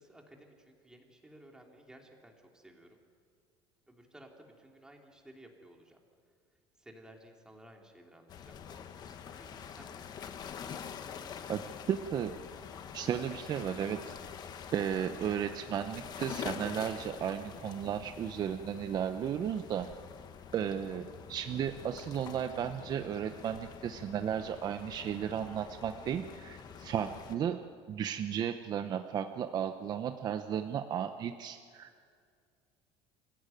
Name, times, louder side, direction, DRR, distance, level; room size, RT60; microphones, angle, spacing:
voice 1, 0.0-3.0 3.9-6.0 6.8-10.3, right 1 dB, 5° right, 1 dB, 3.0 m, -56 dB
sound 1, 8.3-27.3, left 7 dB, 35° left, 1.4 m, -46 dB
voice 2, 11.9-12.4 12.9-14.1 14.7-19.9 20.5-27.6 27.9-31.9, right 9 dB, 35° right, 8 dB, 0.8 m, -34 dB
28.5 x 15.0 x 9.2 m, 2.2 s
cardioid pair, 145°, 11 cm